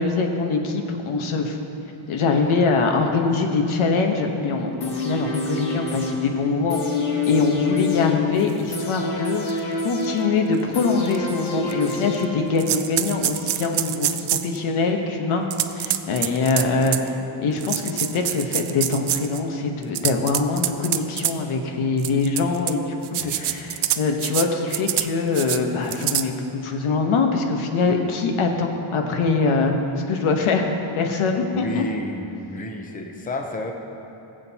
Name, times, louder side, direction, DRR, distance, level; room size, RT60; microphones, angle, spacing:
voice 1, 0.0-1.6 2.1-7.0 7.3-15.4 15.7-17.1 17.4-29.8 30.1-31.9, left 4 dB, 85° left, 3 dB, 1.2 m, -23 dB
sound 1, 4.8-12.8 13.1-13.2, left 4 dB, 55° left, 1.5 m, -27 dB
sound 2, 8.8-8.9 9.5-9.6 10.0-10.1 11.1-11.2 11.7-12.2 12.6-14.6 15.5-17.1 17.6-19.4 19.8-21.3 22.0-22.7 23.0-24.5 24.7-25.1 25.3-25.6 25.9-26.2, right 12 dB, 55° right, 0.5 m, -25 dB
voice 2, 23.2-23.6 31.5-33.7, left 1 dB, 15° left, 3 dB, 0.7 m, -32 dB
19.5 x 7.8 x 2.9 m, 3.0 s
wide cardioid pair, 160°, 48 cm